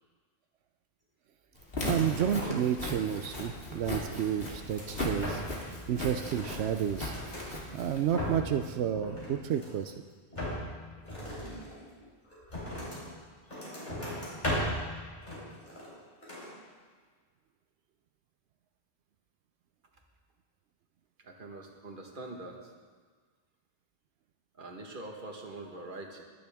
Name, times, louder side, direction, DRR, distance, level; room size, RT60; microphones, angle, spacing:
Walk footsteps, 1.6-8.4, left 1 dB, 60° left, 2.4 m, -38 dB
sound 1, 1.8-2.7 3.0-3.8 4.3-5.7 6.0-7.5 7.9-8.6 8.9-9.9 10.3-13.1 13.5-14.9 15.2-16.0 16.2-16.5, left 1 dB, 45° left, 3.8 m, -38 dB
voice 1, 1.8-9.9, right 9 dB, 90° right, 7 dB, 0.9 m, -31 dB
voice 2, 21.2-22.7 24.5-26.2, right 2 dB, 50° right, 2 dB, 1.6 m, -44 dB
22.0 x 9.7 x 3.5 m, 1.5 s
omnidirectional pair, 1.1 m